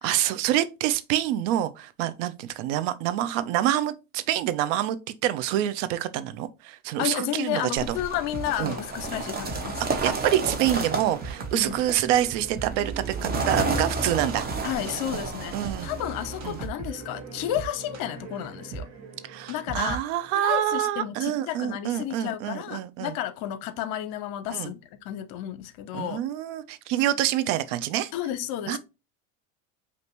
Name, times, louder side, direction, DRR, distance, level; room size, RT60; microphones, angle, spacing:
voice 1, 0.0-8.0 8.6-8.8 9.9-12.9 13.2-14.4 15.1-15.2 15.5-15.9 16.4-16.6 19.2-23.1 24.5-24.7 25.9-28.1 28.7-28.8, right 12 dB, 65° right, 0.7 m, -27 dB
voice 2, 7.0-9.8 11.5-11.7 14.6-18.9 19.5-20.0 20.3-24.8 25.0-26.2 28.1-28.8, left 12 dB, 55° left, 0.8 m, -32 dB
sound 1, 7.8-16.7, right 3 dB, 25° right, 1.0 m, -32 dB
sound 2, 8.1-20.4, right 4 dB, 40° right, 1.3 m, -39 dB
5.2 x 2.8 x 3.0 m
hypercardioid pair, 100°, 40 cm